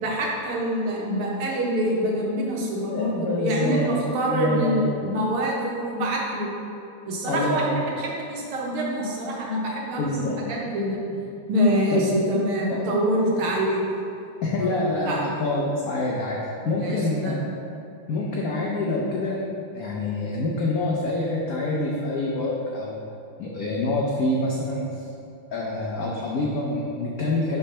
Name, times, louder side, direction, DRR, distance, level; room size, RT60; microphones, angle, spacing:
voice 1, 0.0-6.5 7.1-7.8 8.2-11.0 11.5-13.9 14.6-15.4 16.6-17.4, equal, 80° right, -3 dB, 1.9 m, -25 dB
voice 2, 2.9-4.0 4.3-4.9 7.2-7.9 10.0-10.4 11.9-12.1 12.7-12.9 14.4-17.5 18.1-19.4 19.7-23.0 23.4-25.1 25.5-27.6, left 2 dB, 80° left, -3 dB, 0.8 m, -26 dB
5.5 x 4.0 x 5.5 m, 2.6 s
omnidirectional pair, 2.4 m